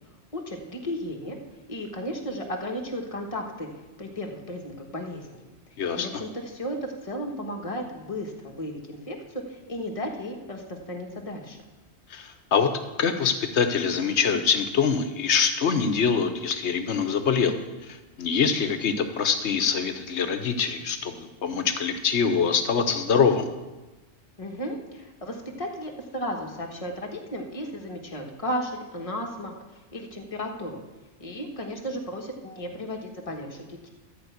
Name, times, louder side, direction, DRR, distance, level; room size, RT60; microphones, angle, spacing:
voice 1, 0.3-1.4 1.7-3.7 4.0-5.4 5.9-11.6 24.4-29.5 29.9-30.8 31.2-33.9, equal, 30° left, 1 dB, 1.4 m, -34 dB
voice 2, 5.8-6.1 12.1-12.7 13.0-17.6 17.9-23.5, left 6 dB, 80° left, 8 dB, 1.2 m, -24 dB
13.0 x 5.1 x 8.1 m, 1.1 s
omnidirectional pair, 1.2 m